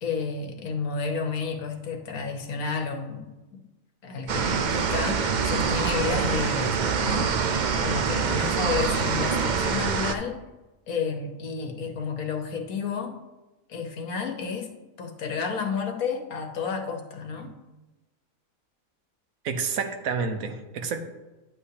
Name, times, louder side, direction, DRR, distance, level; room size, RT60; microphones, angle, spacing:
voice 1, 0.0-3.6 4.0-7.3 7.8-10.4 10.9-13.2 13.7-14.7 15.0-17.5, left 5 dB, 90° left, 3 dB, 1.5 m, -31 dB
sound 1, 4.3-10.1, right 6 dB, 65° right, 0.4 m, -25 dB
voice 2, 19.4-21.0, right 5 dB, 90° right, 6 dB, 1.3 m, -29 dB
10.5 x 8.1 x 2.8 m, 1.1 s
omnidirectional pair, 1.4 m